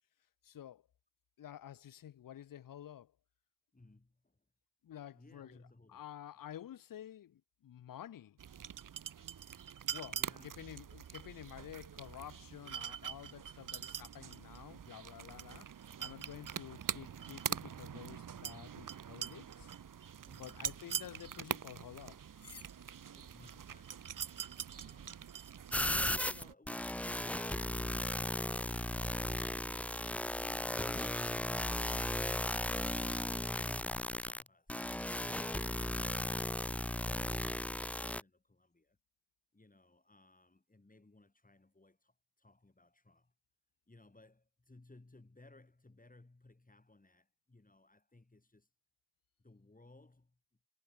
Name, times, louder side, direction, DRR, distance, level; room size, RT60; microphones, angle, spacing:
voice 1, 0.4-0.8 1.4-3.1 4.8-5.6 5.9-8.4 9.9-15.7 16.0-19.7 20.4-22.2, left 11 dB, 55° left, 0.7 m, -50 dB
voice 2, 3.7-4.4 5.1-6.1 9.7-9.8 10.1-10.5 20.2-20.8 23.1-25.4 33.3-39.0 39.5-43.3 43.9-48.7 49.4-50.4, left 2 dB, 20° left, 6.1 m, -62 dB
sound 1, 8.4-26.5, right 8 dB, 50° right, 1.1 m, -44 dB
sound 2, 19.6-26.0, left 4 dB, 35° left, 3.9 m, -64 dB
sound 3, 25.7-38.2, left 1 dB, 5° left, 0.4 m, -36 dB
cardioid pair, 75°, 40 cm